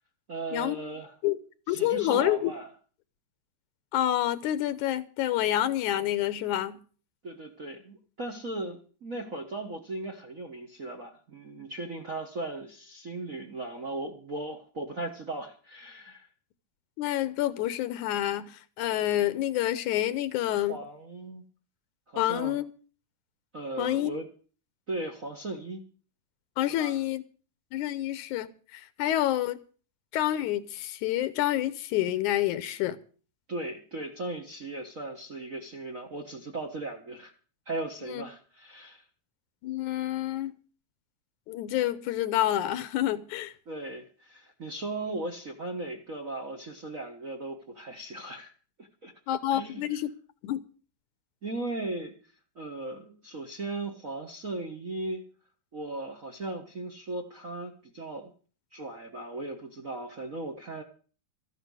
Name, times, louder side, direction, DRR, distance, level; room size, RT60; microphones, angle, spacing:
voice 1, 0.3-1.1 1.7-2.7 7.2-16.3 20.7-21.4 22.1-22.6 23.5-24.3 24.9-25.8 26.7-26.9 33.5-37.3 37.7-39.0 43.7-48.5 48.8-49.1 49.5-49.8 51.4-52.1 52.5-55.2 55.7-58.3 58.7-60.8, right 2 dB, 45° right, 1.1 m, -37 dB
voice 2, 1.7-2.5 3.9-6.8 17.0-20.8 22.2-22.7 23.8-24.1 26.6-27.2 27.7-29.6 30.1-33.0 38.1-38.2 39.6-40.6 41.5-43.5 49.3-50.1 50.4-50.6, left 13 dB, 85° left, 2.4 m, -28 dB
14.0 x 11.0 x 6.3 m
omnidirectional pair, 3.4 m